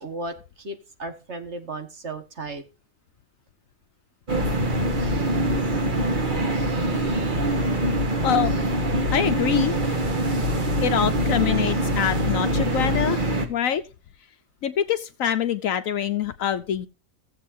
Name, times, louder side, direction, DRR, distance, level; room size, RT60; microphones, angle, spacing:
voice 1, 0.0-2.6, right 2 dB, 50° right, 1.7 m, -35 dB
sound 1, 4.3-13.5, right 1 dB, 35° right, 1.5 m, -24 dB
voice 2, 9.1-9.7 10.8-13.2 13.5-13.8 14.6-16.9, left 9 dB, 70° left, 1.1 m, -25 dB
16.0 x 7.7 x 2.6 m
omnidirectional pair, 1.5 m